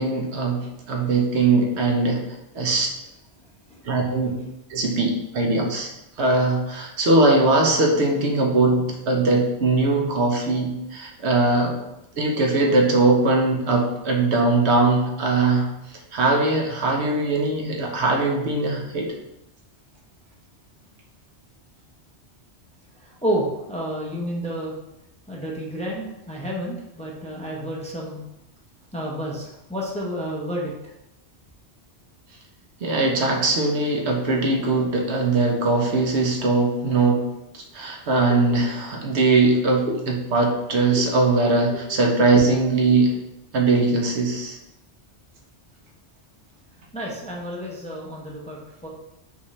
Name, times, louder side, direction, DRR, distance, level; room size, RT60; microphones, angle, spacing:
voice 1, 0.0-2.2 2.6-2.9 3.9-4.3 4.7-5.9 6.2-11.8 12.2-15.7 16.1-19.1 32.8-37.3 37.5-39.9 40.3-43.1 43.5-44.6, right 3 dB, 75° right, 0 dB, 1.1 m, -20 dB
voice 2, 23.2-24.7 25.3-28.2 28.9-30.7 38.3-38.4 39.9-40.0 40.9-41.0 41.7-41.8 46.9-48.9, equal, 10° left, -3 dB, 0.6 m, -30 dB
5.8 x 2.6 x 3.1 m, 0.88 s
omnidirectional pair, 1.1 m